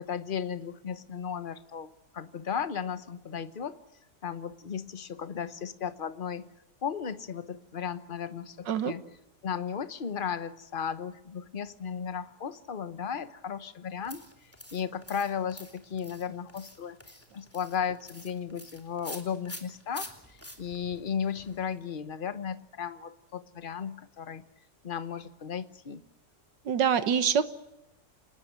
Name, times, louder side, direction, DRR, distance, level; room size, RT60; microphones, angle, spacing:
voice 1, 0.0-3.8 4.2-6.5 6.8-9.0 9.4-14.2 14.7-17.0 17.3-24.4 24.8-26.0, left 7 dB, 35° left, 12 dB, 1.0 m, -35 dB
sound 1, 14.0-21.8, left 1 dB, 10° left, 2.9 m, -47 dB
voice 2, 26.7-27.5, right 7 dB, 90° right, 12 dB, 1.9 m, -25 dB
26.5 x 20.0 x 9.3 m, 0.91 s
omnidirectional pair, 1.9 m